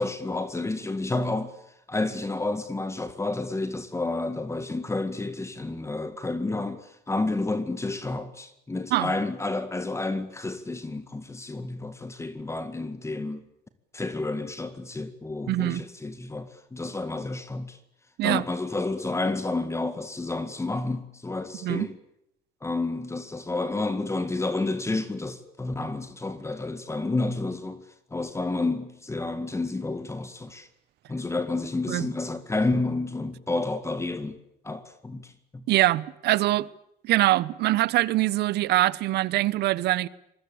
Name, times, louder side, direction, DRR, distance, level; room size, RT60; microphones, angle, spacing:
voice 1, 0.0-1.5 1.9-13.5 13.9-17.8 18.2-21.9 22.6-27.8 28.1-30.7 31.1-34.4 34.6-35.6, left 2 dB, 15° left, 2.0 m, -30 dB
voice 2, 15.5-15.8 18.2-18.4 21.6-21.9 31.9-32.1 35.7-36.7 37.0-40.1, right 16 dB, 75° right, 1.1 m, -23 dB
25.5 x 21.0 x 8.6 m
cardioid pair, 110°, 17 cm